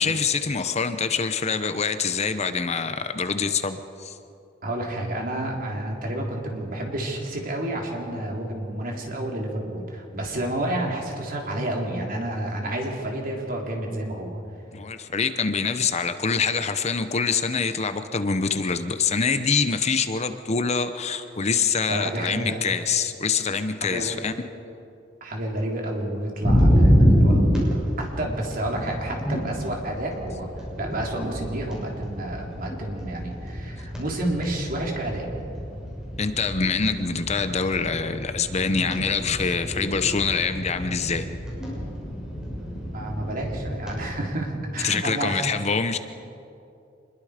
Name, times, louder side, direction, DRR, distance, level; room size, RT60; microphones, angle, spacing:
voice 1, 0.0-4.2 14.7-24.3 36.2-41.3 44.8-46.0, left 5 dB, 35° left, 10 dB, 0.8 m, -25 dB
voice 2, 4.6-14.4 21.9-22.6 23.8-24.1 25.2-35.3 42.9-45.5, right 1 dB, 50° right, 0 dB, 3.6 m, -30 dB
sound 1, 26.4-44.0, equal, 5° right, 6.1 m, -26 dB
26.0 x 21.5 x 5.1 m, 2.7 s
head